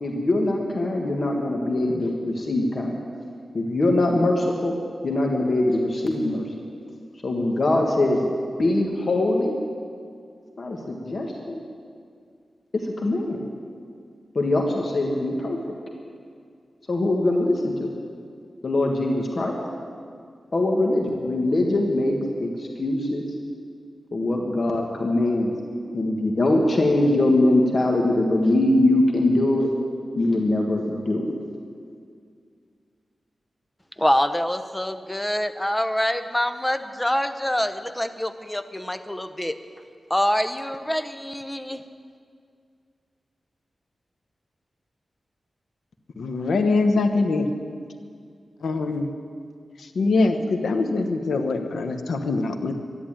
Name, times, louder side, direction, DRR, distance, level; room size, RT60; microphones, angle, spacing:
voice 1, 0.0-3.1 3.5-4.7 5.0-6.4 7.2-8.3 8.6-9.6 10.6-11.6 12.7-13.4 14.3-15.8 16.9-17.9 18.6-19.5 20.5-23.3 24.1-25.5 25.9-29.7 30.2-31.4, left 1 dB, 50° left, 0 dB, 1.7 m, -22 dB
voice 2, 34.0-39.6 40.1-41.8, equal, 10° left, 10 dB, 0.8 m, -25 dB
voice 3, 46.2-47.5 48.6-49.1 49.8-52.8, left 3 dB, 90° left, 7 dB, 1.1 m, -23 dB
13.0 x 11.0 x 8.9 m, 2.2 s
wide cardioid pair, 75°, 0 cm